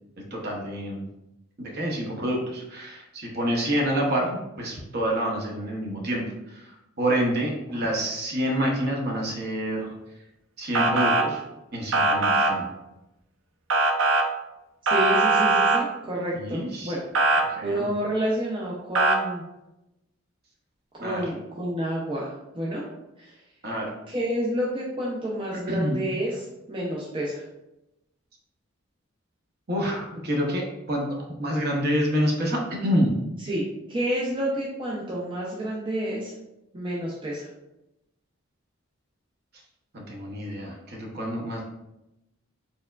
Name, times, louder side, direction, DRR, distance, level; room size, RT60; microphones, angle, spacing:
voice 1, 0.3-1.1 1.6-9.9 10.6-11.4 11.7-12.7 16.3-16.9 17.4-17.9 21.0-21.3 23.6-23.9 25.7-26.0 29.7-33.2 39.9-41.6, equal, 50° right, -1 dB, 0.8 m, -27 dB
Motor vehicle (road) / Siren, 10.7-11.2 11.9-12.5 13.7-14.2 14.9-15.8 17.1-17.4 18.9-19.2, right 2 dB, 75° right, 0.5 m, -20 dB
voice 2, 14.9-17.0 17.6-19.4 20.9-22.8 23.2-23.3 24.1-26.3 26.7-27.4 33.5-36.3 36.7-37.5, right 1 dB, 25° right, -5 dB, 0.5 m, -29 dB
4.4 x 3.4 x 2.4 m, 0.91 s
head